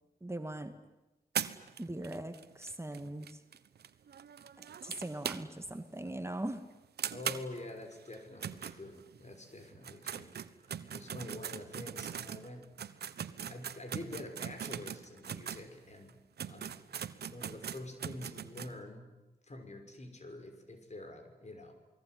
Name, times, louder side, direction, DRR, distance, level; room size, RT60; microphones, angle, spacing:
voice 1, 0.2-0.7 1.8-3.4 4.6-6.6, right 1 dB, 15° right, 7 dB, 2.2 m, -40 dB
sound 1, 1.3-5.8 6.1-6.2 6.5-6.6 7.0-9.3 9.7-15.7 16.1-16.2 16.4-18.7, right 8 dB, 85° right, 1.2 m, -41 dB
voice 2, 7.1-10.4 10.7-12.7 13.5-16.2 16.5-16.8 17.2-19.1 19.4-21.7, left 2 dB, 45° left, 6 dB, 6.1 m, -46 dB
28.0 x 20.5 x 9.6 m, 1.0 s
cardioid pair, 50°, 16 cm